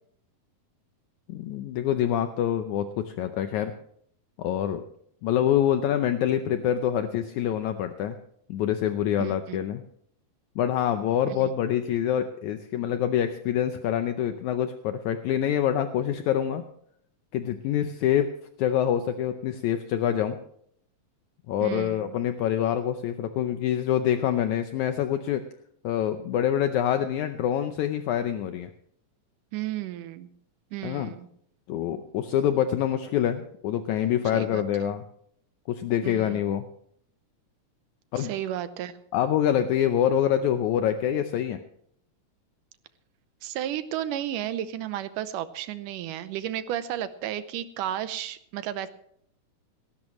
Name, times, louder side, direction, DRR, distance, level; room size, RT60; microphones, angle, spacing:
voice 1, 1.3-3.7 4.4-4.8 5.2-8.2 8.5-9.8 10.6-16.6 17.3-18.3 18.6-20.4 21.5-25.4 25.8-28.7 30.8-31.1 31.7-35.0 35.7-36.7 38.1-38.3 39.1-41.6, left 10 dB, 75° left, 8 dB, 2.0 m, -26 dB
voice 2, 9.2-9.6 11.3-11.5 21.6-22.1 29.5-30.3 30.7-31.3 34.3-34.6 36.0-36.4 38.2-39.0 43.4-48.9, right 11 dB, 90° right, 12 dB, 2.4 m, -33 dB
18.5 x 16.0 x 3.1 m, 0.67 s
omnidirectional pair, 3.7 m